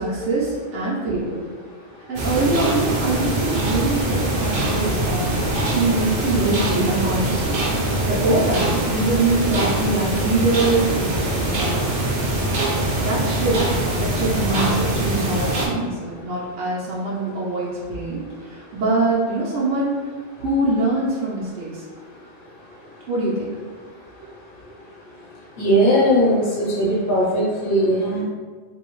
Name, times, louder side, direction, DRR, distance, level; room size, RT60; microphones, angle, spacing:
voice 1, 0.0-1.4 2.1-5.4 5.7-11.8 13.0-13.6 14.0-18.2 18.5-20.0 20.4-21.8 23.1-23.5, right 2 dB, 80° right, -7 dB, 1.0 m, -23 dB
sound 1, 2.2-15.7, right 1 dB, 55° right, 0.7 m, -23 dB
voice 2, 25.6-28.2, equal, 50° left, -6 dB, 0.8 m, -19 dB
2.8 x 2.7 x 2.9 m, 1.5 s
omnidirectional pair, 1.2 m